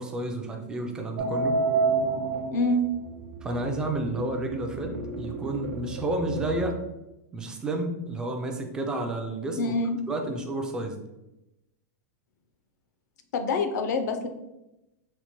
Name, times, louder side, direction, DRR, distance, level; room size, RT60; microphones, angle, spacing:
voice 1, 0.0-1.6 3.4-6.8 7.3-9.7 10.1-11.0, right 1 dB, 10° right, 3 dB, 0.3 m, -31 dB
sound 1, 1.2-6.7, right 3 dB, 90° right, 0.6 m, -30 dB
voice 2, 2.5-2.9 9.6-10.0 13.3-14.3, left 2 dB, 85° left, 6 dB, 0.5 m, -25 dB
4.2 x 2.1 x 2.9 m, 0.96 s
supercardioid pair, 165°, 9 cm